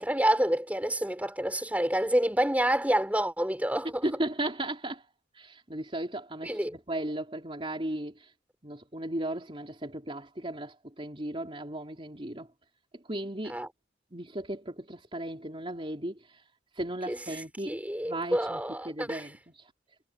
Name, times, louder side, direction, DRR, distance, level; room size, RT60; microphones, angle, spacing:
voice 1, 0.0-4.1 6.4-6.7 13.5-13.7 17.1-19.3, right 1 dB, 10° right, 4.7 m, -28 dB
voice 2, 4.0-5.0 5.4-8.3 8.6-12.5 12.9-13.6 14.1-16.4 16.8-17.8 18.0-18.6 18.9-19.6, right 1 dB, 30° right, 3.4 m, -36 dB
head